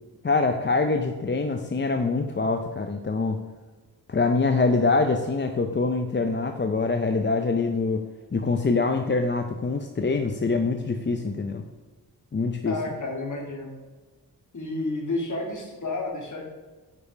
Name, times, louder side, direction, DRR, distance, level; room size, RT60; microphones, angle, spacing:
voice 1, 0.2-3.4 4.1-8.0 8.3-11.6 12.3-12.8, left 3 dB, 30° left, 5 dB, 0.5 m, -24 dB
voice 2, 12.6-13.7 14.5-16.4, left 2 dB, 50° left, 0 dB, 2.3 m, -31 dB
9.6 x 5.2 x 5.1 m, 1.3 s
wide cardioid pair, 120°, 39 cm